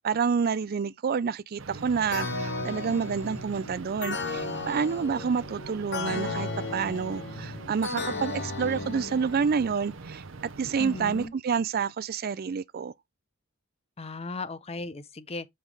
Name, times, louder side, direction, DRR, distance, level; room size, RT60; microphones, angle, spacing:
voice 1, 0.0-10.2 10.6-12.9, right 6 dB, 45° right, 0.4 m, -28 dB
sound 1, 1.6-11.3, right 3 dB, 65° right, 0.9 m, -43 dB
sound 2, 2.1-9.8, left 3 dB, 55° left, 1.1 m, -35 dB
voice 2, 10.8-11.3 14.0-15.5, left 3 dB, 30° left, 0.7 m, -36 dB
5.6 x 5.0 x 3.3 m
head